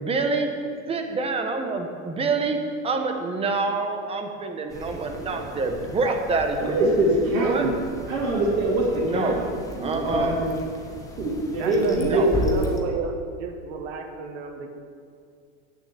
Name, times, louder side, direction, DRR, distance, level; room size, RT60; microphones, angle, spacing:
voice 1, 0.0-0.5 0.9-2.6 2.8-6.9 7.4-7.6 9.0-9.4 9.8-10.3 12.0-12.3, right 3 dB, 15° right, 4 dB, 0.8 m, -26 dB
sound 1, 4.7-12.8, left 1 dB, 10° left, 0.9 m, -36 dB
voice 2, 4.7-5.8 11.5-14.7, right 5 dB, 60° right, 5 dB, 1.5 m, -34 dB
voice 3, 6.6-7.8 8.1-10.6 11.2-12.6, right 1 dB, 85° right, -7 dB, 2.6 m, -23 dB
9.0 x 6.5 x 8.1 m, 2.3 s
supercardioid pair, 145°, 40 cm